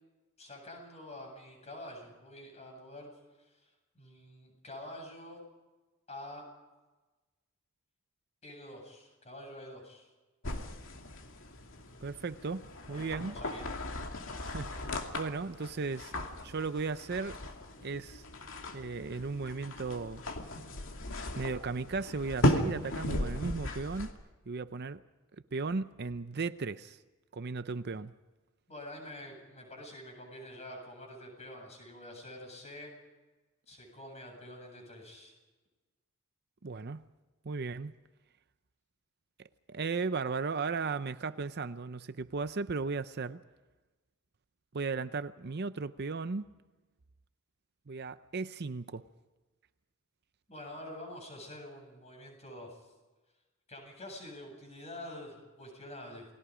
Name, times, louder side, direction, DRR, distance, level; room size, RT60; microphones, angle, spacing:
voice 1, 0.4-3.1 3.4-5.4 6.1-6.4 8.4-10.1 12.9-13.6 28.7-32.9 33.7-35.3 50.5-52.9 53.7-56.3, left 1 dB, 30° left, 8.0 m, -47 dB
sound 1, 10.4-24.1, equal, 60° left, 2.5 m, -36 dB
voice 2, 12.0-13.4 14.4-16.1 16.4-17.4 17.8-18.2 18.7-20.2 21.3-24.1 24.5-25.0 25.5-27.0 27.3-28.1 36.6-37.0 37.4-37.9 39.7-43.4 44.7-46.4 47.9-49.0, right 4 dB, 50° right, 0.6 m, -36 dB
29.5 x 20.5 x 5.1 m
head